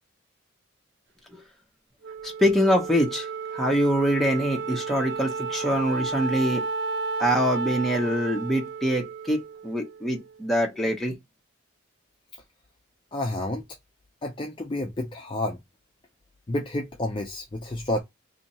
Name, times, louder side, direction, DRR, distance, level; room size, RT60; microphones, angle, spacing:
Wind instrument woodwind instrument, 2.0-10.6, right 4 dB, 60° right, 0.5 m, -33 dB
voice 1, 2.2-3.3 3.5-6.6 7.2-11.1, equal, ahead, 0.8 m, -24 dB
voice 2, 13.1-13.6 14.2-15.6 16.5-18.0, left 1 dB, 25° left, 0.4 m, -30 dB
2.8 x 2.8 x 4.0 m
head